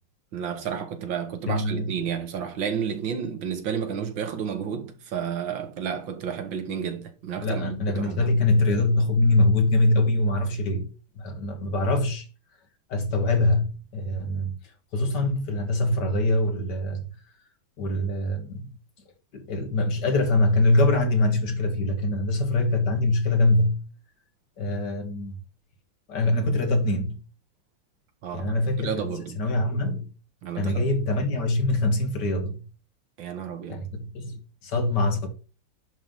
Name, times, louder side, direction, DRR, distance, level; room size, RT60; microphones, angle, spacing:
voice 1, 0.3-8.3 28.2-29.4 30.4-30.9 33.2-33.8, right 7 dB, 80° right, 2.0 m, -31 dB
voice 2, 1.5-1.9 7.4-10.9 11.2-12.3 12.9-14.6 14.9-17.0 17.8-18.7 19.3-23.8 24.6-25.4 26.1-27.2 28.3-29.1 29.4-30.1 30.6-32.6 33.7-35.3, left 2 dB, 60° left, 2.1 m, -23 dB
10.5 x 3.8 x 5.3 m
omnidirectional pair, 2.1 m